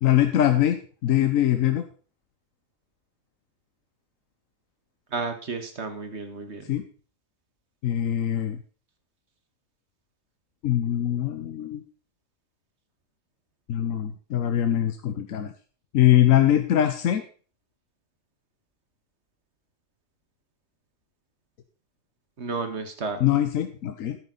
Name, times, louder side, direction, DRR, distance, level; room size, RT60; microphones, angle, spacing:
voice 1, 0.0-1.8 6.7-6.8 7.8-8.6 10.6-11.8 13.7-15.5 15.9-17.2 23.2-24.2, left 11 dB, 80° left, 7 dB, 1.2 m, -22 dB
voice 2, 5.1-6.7 22.4-23.2, right 4 dB, 55° right, 7 dB, 1.8 m, -32 dB
11.0 x 9.2 x 3.9 m, 0.39 s
omnidirectional pair, 1.4 m